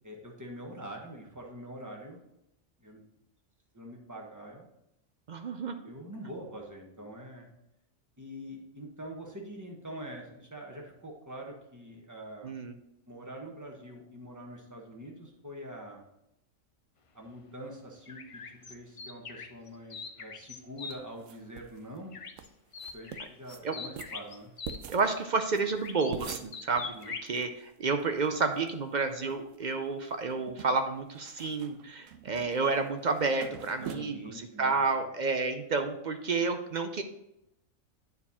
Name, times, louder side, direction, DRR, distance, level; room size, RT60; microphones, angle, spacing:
voice 1, 0.0-2.2 2.8-3.0 3.7-4.6 5.8-7.5 8.2-12.5 13.1-16.0 17.1-22.1 22.9-24.5 26.9-27.2 33.8-35.0, equal, 15° right, 0 dB, 1.3 m, -44 dB
voice 2, 5.3-5.8 12.4-12.7 23.6-23.8 24.9-34.2 34.6-37.0, right 4 dB, 55° right, 7 dB, 0.5 m, -30 dB
sound 1, 18.1-21.0 22.1-22.5 22.7-24.8 25.8-27.3, left 5 dB, 50° left, 0.4 m, -42 dB
sound 2, 20.9-21.8 22.0-22.1 22.4-22.5 22.8-23.6 24.0-27.5 27.7-27.8 28.0-28.7 29.1-29.7 30.0-34.0, right 8 dB, 75° right, 1.0 m, -45 dB
9.5 x 4.6 x 4.2 m, 0.84 s
omnidirectional pair, 1.4 m